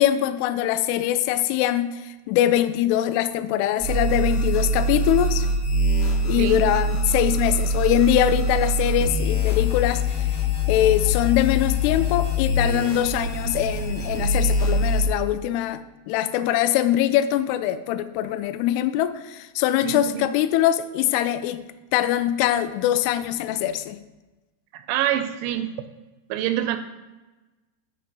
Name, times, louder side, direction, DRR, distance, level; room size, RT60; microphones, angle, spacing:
voice 1, 0.0-5.5 6.2-21.6 21.9-24.0, left 12 dB, 90° left, 11 dB, 2.3 m, -23 dB
sound 1, 3.8-15.0, left 1 dB, 45° left, 1.8 m, -23 dB
voice 2, 19.8-20.3 24.7-25.7 26.3-26.8, right 11 dB, 85° right, 9 dB, 2.9 m, -26 dB
10.5 x 4.2 x 5.4 m, 1.1 s
omnidirectional pair, 5.3 m